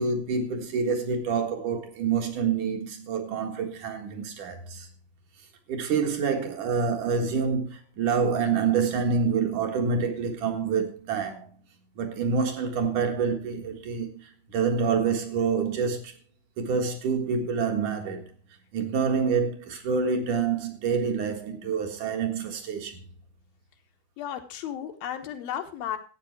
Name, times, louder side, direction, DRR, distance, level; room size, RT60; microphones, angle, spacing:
voice 1, 0.0-4.9 5.7-11.5 12.0-16.1 16.6-18.3 18.7-23.0, right 5 dB, 60° right, 2.9 m, -27 dB
voice 2, 24.2-26.0, left 10 dB, 75° left, 3.0 m, -34 dB
13.0 x 8.9 x 4.7 m
omnidirectional pair, 4.3 m